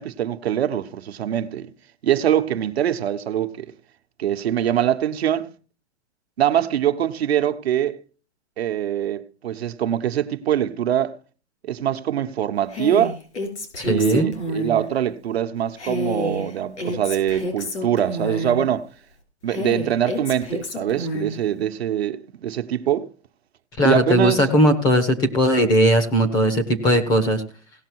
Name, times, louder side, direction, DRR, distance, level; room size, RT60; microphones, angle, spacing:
voice 1, 0.0-1.7 2.0-3.7 4.2-5.5 6.4-8.0 8.6-11.2 11.6-13.2 13.9-18.9 19.4-23.1 23.8-24.5, right 10 dB, 65° right, 1.0 m, -23 dB
Female speech woman speaking, 12.7-14.8 15.8-18.7 19.5-21.4, left 1 dB, 80° left, 5.1 m, -29 dB
voice 2, 13.8-14.3 23.8-27.4, equal, 10° left, 0.7 m, -18 dB
17.0 x 6.2 x 4.6 m
hypercardioid pair, 160°, 34 cm